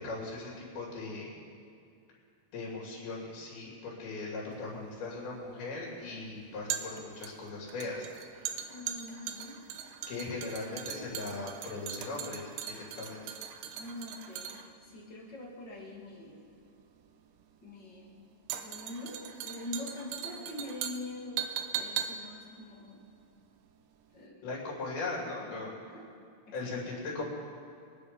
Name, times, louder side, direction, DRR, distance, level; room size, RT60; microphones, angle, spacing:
voice 1, 0.0-1.3 2.5-8.1 10.1-12.5 12.8-13.2 24.4-25.8 26.5-27.2, left 3 dB, 90° left, -4 dB, 4.9 m, -39 dB
sound 1, 4.6-23.8 24.1-24.2, right 9 dB, 75° right, 2.3 m, -40 dB
voice 2, 8.7-9.6 13.8-16.4 17.6-21.5 21.7-23.0 24.1-24.6 25.4-26.1 26.5-26.6, left 1 dB, 35° left, -2 dB, 2.4 m, -44 dB
24.0 x 9.6 x 5.3 m, 2.5 s
omnidirectional pair, 4.2 m